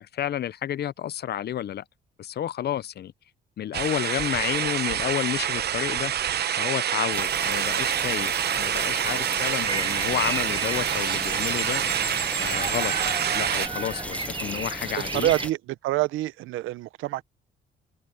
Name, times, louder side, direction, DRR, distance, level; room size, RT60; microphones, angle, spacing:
voice 1, 0.0-1.8 2.2-3.1 3.6-6.1 6.5-8.3 8.6-11.9 12.4-15.3, left 11 dB, 55° left, 0.6 m, -30 dB
sound 1, 3.7-13.7, right 10 dB, 55° right, 0.8 m, -27 dB
sound 2, 7.1-15.5, left 1 dB, 5° left, 0.5 m, -37 dB
Bird vocalization bird call bird song, 9.6-15.5, right 5 dB, 25° right, 0.8 m, -33 dB
voice 2, 15.1-17.2, right 16 dB, 90° right, 0.8 m, -26 dB
cardioid pair, 90°, 20 cm